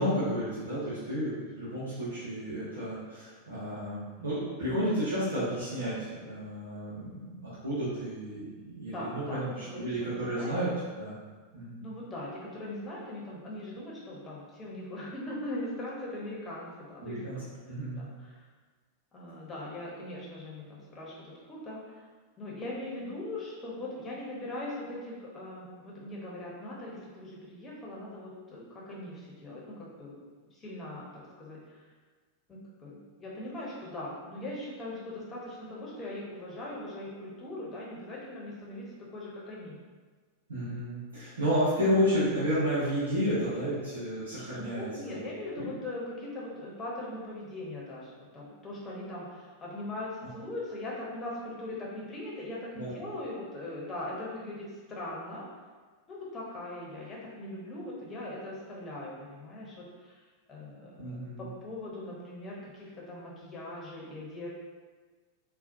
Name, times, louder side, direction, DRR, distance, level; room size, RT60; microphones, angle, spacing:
voice 1, 0.0-7.3 7.6-10.7 11.0-11.1 11.5-11.9 17.0-17.4 17.7-18.0 40.5-45.3 45.6-45.7 52.7-52.9 61.0-61.4, equal, 75° right, -11 dB, 1.0 m, -31 dB
voice 2, 8.9-9.5 9.7-9.9 10.3-10.5 11.8-18.4 19.1-22.1 22.4-30.1 30.4-31.8 32.5-39.8 44.5-55.5 56.1-60.2 60.5-64.5, left 1 dB, 20° left, -5 dB, 1.0 m, -40 dB
4.0 x 2.4 x 2.6 m, 1.4 s
figure-of-eight pair, 90°, 0 cm